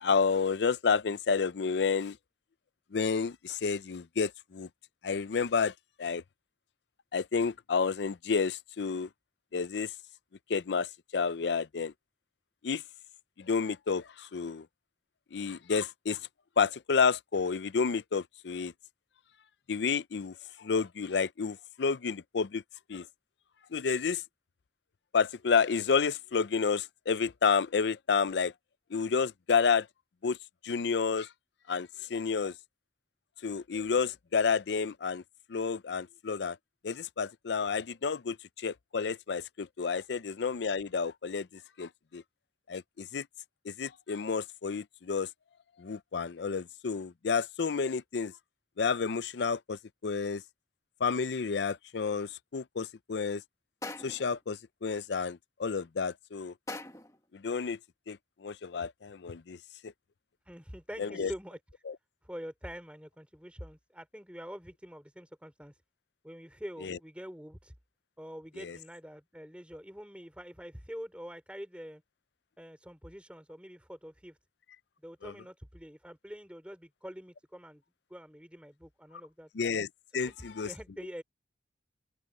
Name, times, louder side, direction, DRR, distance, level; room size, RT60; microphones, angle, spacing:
voice 1, 0.0-2.2 2.9-4.7 5.0-6.2 7.1-9.1 9.5-9.9 10.5-11.9 12.6-12.8 13.4-14.7 15.3-16.2 16.6-18.7 19.7-22.6 22.9-23.1 23.7-24.2 25.1-28.5 28.9-29.9 30.2-30.4 30.6-31.3 31.7-32.6 33.4-35.2 35.5-36.6 36.8-42.2 42.7-43.3 43.6-45.3 45.8-48.3 48.8-50.4 51.0-53.4 54.0-56.5 57.3-57.8 58.1-59.9 61.0-61.3 61.9-62.0 66.8-67.0 68.6-68.8 75.2-75.3 79.5-79.9 80.1-80.7, left 5 dB, 75° left, 0.5 m, -30 dB
sound 1, 53.8-54.4 56.7-57.2, left 2 dB, 20° left, 1.8 m, -41 dB
voice 2, 60.4-61.6 62.2-65.8 66.2-67.7 68.2-72.0 72.6-74.4 75.0-77.8 78.1-79.5 80.2-81.2, equal, 5° right, 3.6 m, -45 dB
open air
head